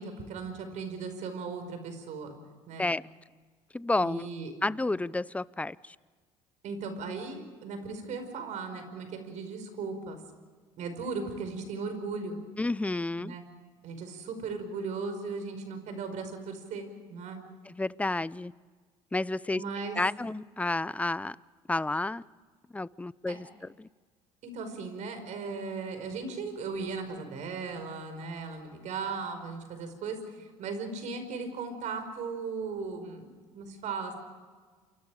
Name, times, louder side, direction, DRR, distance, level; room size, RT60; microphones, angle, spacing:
voice 1, 0.0-2.3 2.7-2.8 4.0-4.5 6.6-10.2 10.8-12.4 13.2-13.4 13.8-17.4 19.5-20.1 23.3-23.4 24.4-33.3 33.5-34.1, right 4 dB, 65° right, 7 dB, 5.2 m, -37 dB
voice 2, 3.7-4.3 4.6-6.0 12.6-13.4 17.7-18.5 19.1-19.6 20.0-21.4 21.7-22.2 22.7-23.5 23.8-23.9, left 2 dB, 10° left, 20 dB, 0.6 m, -30 dB
29.0 x 24.5 x 5.0 m, 1.5 s
supercardioid pair, 75°, 13 cm